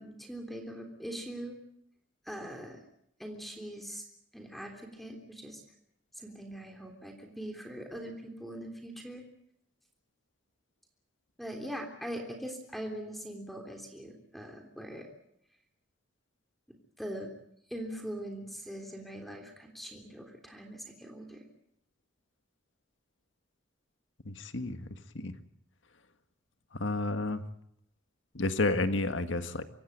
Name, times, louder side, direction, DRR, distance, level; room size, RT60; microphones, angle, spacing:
voice 1, 0.0-1.6 2.2-2.8 3.2-4.0 4.3-5.6 6.2-9.2 11.4-15.1 17.0-17.3 17.7-21.4, equal, ahead, 3 dB, 3.4 m, -42 dB
voice 2, 24.2-24.8 25.1-25.3 26.8-27.4 28.3-29.6, left 2 dB, 80° left, 9 dB, 1.7 m, -30 dB
25.0 x 16.5 x 9.3 m, 0.75 s
head